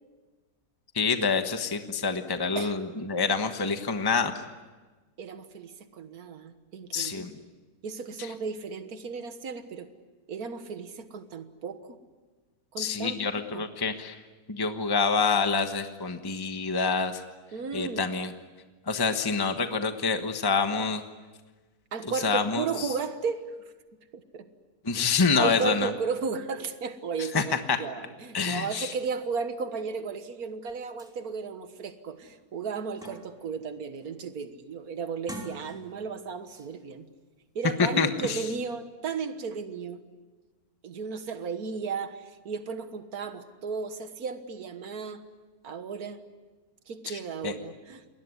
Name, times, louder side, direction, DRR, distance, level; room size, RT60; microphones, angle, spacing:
voice 1, 0.9-4.3 6.9-7.3 8.2-8.3 12.8-14.2 14.5-17.2 17.7-18.3 18.9-21.0 22.0-22.9 24.8-25.9 27.3-27.8 28.3-28.9 37.8-38.4 47.1-47.5, left 5 dB, 15° left, 7 dB, 1.2 m, -27 dB
voice 2, 5.2-7.3 7.8-9.9 10.3-12.0 12.7-13.6 17.5-18.1 21.9-23.5 24.1-24.5 24.9-25.1 25.4-37.1 37.6-40.0 40.8-45.2 45.6-46.2 46.9-48.0, right 5 dB, 75° right, 9 dB, 1.9 m, -34 dB
sound 1, 30.7-30.8 31.0-31.2 31.7-31.8 32.2-33.5 33.9-34.3 35.1-36.1 36.5-36.7, right 1 dB, ahead, 3.3 m, -45 dB
28.0 x 21.5 x 9.7 m, 1.3 s
omnidirectional pair, 1.6 m